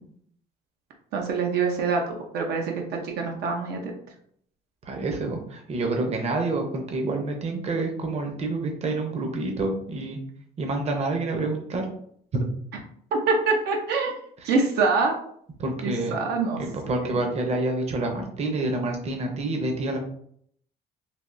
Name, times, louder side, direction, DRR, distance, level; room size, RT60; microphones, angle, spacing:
voice 1, 1.1-3.9 13.1-14.1 14.4-15.2 15.8-16.6 17.0-17.2, right 4 dB, 75° right, 2 dB, 0.6 m, -25 dB
voice 2, 4.8-10.2 10.6-11.9 12.3-12.5 14.4-14.5 15.6-16.2 16.6-20.0, right 2 dB, 40° right, 3 dB, 0.7 m, -28 dB
3.4 x 2.6 x 2.5 m, 0.65 s
cardioid pair, 110°, 17 cm